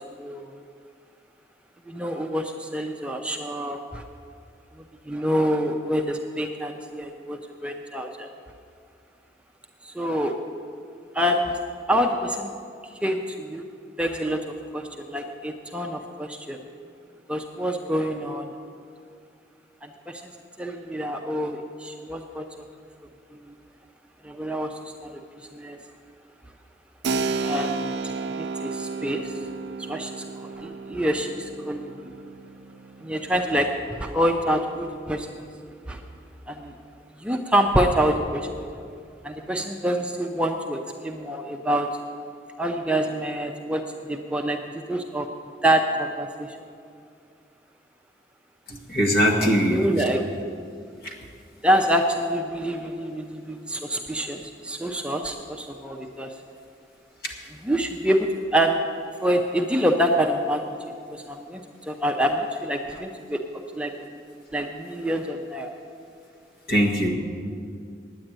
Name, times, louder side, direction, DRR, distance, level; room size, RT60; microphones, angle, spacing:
voice 1, 0.2-0.6 1.9-4.0 5.0-8.3 9.8-10.4 11.1-11.6 11.9-12.5 12.8-13.6 14.0-16.6 17.3-18.5 19.8-20.3 20.6-22.5 23.4-23.5 24.2-25.8 27.4-27.9 28.3-29.4 29.8-32.1 33.0-33.7 34.0-35.3 35.9-36.0 36.5-36.8 37.2-38.5 39.2-41.9 42.6-45.3 45.6-46.6 49.7-50.2 51.6-56.3 57.6-58.8 59.2-60.6 61.1-63.4 63.7-64.2 64.5-65.8, equal, 5° right, 3 dB, 0.5 m, -26 dB
Keyboard (musical), 27.0-35.4, right 4 dB, 80° right, 0.5 m, -33 dB
voice 2, 48.7-50.1 51.0-51.1 57.2-57.3 66.7-67.1, equal, 55° left, 0 dB, 1.8 m, -22 dB
9.7 x 9.1 x 8.8 m, 2.4 s
head